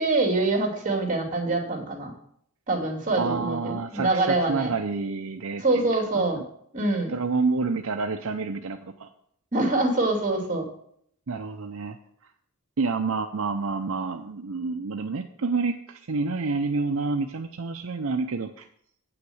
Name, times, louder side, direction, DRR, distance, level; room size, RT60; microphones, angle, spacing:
voice 1, 0.0-2.1 2.7-4.7 5.6-6.4 6.7-7.1 9.5-10.7, right 2 dB, 35° right, 0 dB, 2.6 m, -25 dB
voice 2, 3.2-6.4 7.1-9.1 11.3-12.0 12.8-18.7, right 4 dB, 70° right, 6 dB, 0.6 m, -29 dB
8.8 x 5.9 x 7.8 m, 0.68 s
head